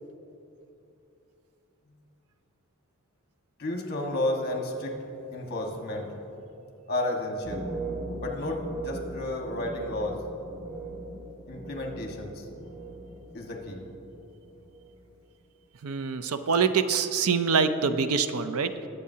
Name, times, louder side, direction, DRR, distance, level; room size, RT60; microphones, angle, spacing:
voice 1, 3.6-5.0 5.3-6.2 6.9-7.6 8.2-10.2 11.5-12.5 13.3-13.8, left 1 dB, 45° left, 1 dB, 1.5 m, -32 dB
sound 1, 7.3-13.2 13.4-14.2 14.5-14.9, right 2 dB, 10° right, 2.6 m, -39 dB
voice 2, 15.8-18.7, right 5 dB, 70° right, 10 dB, 0.5 m, -25 dB
20.0 x 8.2 x 2.8 m, 2.9 s
head